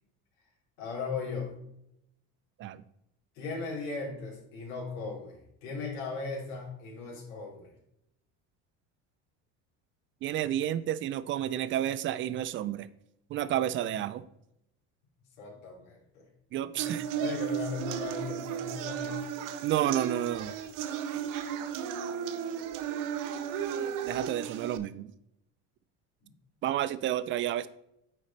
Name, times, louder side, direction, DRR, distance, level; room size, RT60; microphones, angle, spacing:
voice 1, 0.8-1.5 3.3-7.7 15.4-16.2 16.8-19.2, left 4 dB, 80° left, -4 dB, 3.3 m, -38 dB
voice 2, 10.2-12.9 13.3-14.2 16.5-17.0 19.6-20.5 24.1-25.1 26.6-27.7, right 11 dB, 35° right, 15 dB, 0.4 m, -30 dB
sound 1, 16.8-24.8, right 8 dB, 60° right, 0.8 m, -34 dB
9.1 x 5.0 x 4.2 m, 0.80 s
cardioid pair, 145°, 36 cm